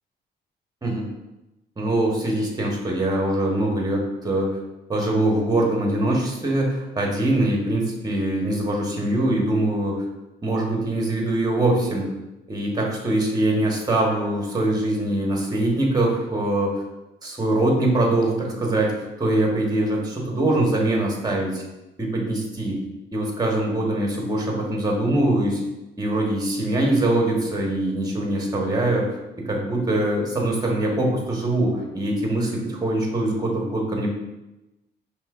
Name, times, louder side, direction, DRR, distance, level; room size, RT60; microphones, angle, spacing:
voice 1, 1.8-4.6 4.9-10.0 10.4-12.1 12.5-16.8 17.2-21.6 22.0-22.8 23.1-25.6 26.0-29.1 29.4-34.1, right 1 dB, 20° right, -1 dB, 1.1 m, -23 dB
5.3 x 3.0 x 2.4 m, 0.98 s
cardioid pair, 90°, 20 cm